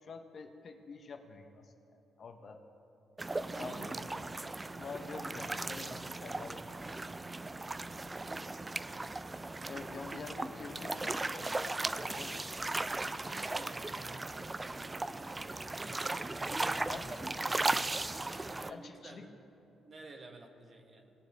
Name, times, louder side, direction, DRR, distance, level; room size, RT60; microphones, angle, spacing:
voice 1, 0.0-2.6 3.6-4.1 4.8-7.3 9.7-12.8 16.8-17.9 18.7-19.3, left 4 dB, 50° left, 6 dB, 0.8 m, -47 dB
sound 1, 3.2-18.7, right 2 dB, 20° right, 0.3 m, -37 dB
voice 2, 3.4-4.8 12.8-17.0 18.2-19.4 19.8-21.1, right 2 dB, 40° right, 4 dB, 1.1 m, -54 dB
19.0 x 7.0 x 3.3 m, 2.8 s
cardioid pair, 90°, 0 cm